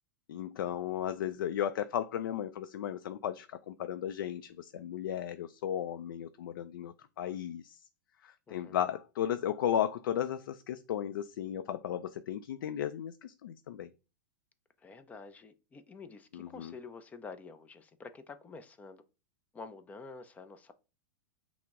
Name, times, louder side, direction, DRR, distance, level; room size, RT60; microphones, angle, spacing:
voice 1, 0.3-7.8 8.2-13.9 16.3-16.7, left 10 dB, 80° left, 0.4 m, -35 dB
voice 2, 8.5-8.9 14.8-19.0 19.5-20.7, left 4 dB, 15° left, 0.4 m, -48 dB
5.7 x 2.0 x 3.5 m
hypercardioid pair, 135°, 11 cm